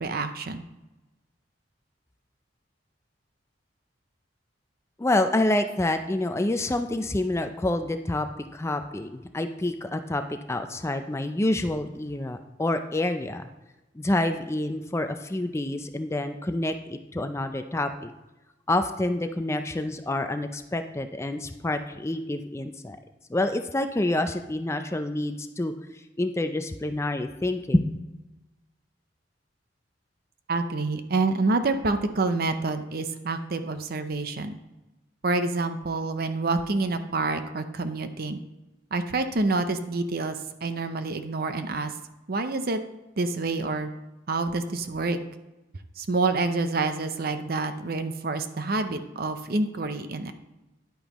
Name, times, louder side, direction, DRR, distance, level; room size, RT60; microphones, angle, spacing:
voice 1, 0.0-0.6 30.5-34.5 35.2-38.4 38.9-41.9 42.3-42.8 43.2-43.9 44.3-45.2 46.0-50.3, right 3 dB, 55° right, 9 dB, 0.7 m, -27 dB
voice 2, 5.0-13.5 13.9-18.1 18.7-23.0 23.3-25.7 26.2-28.0, left 1 dB, 15° left, 8 dB, 0.4 m, -27 dB
10.5 x 8.9 x 3.0 m, 1.0 s
head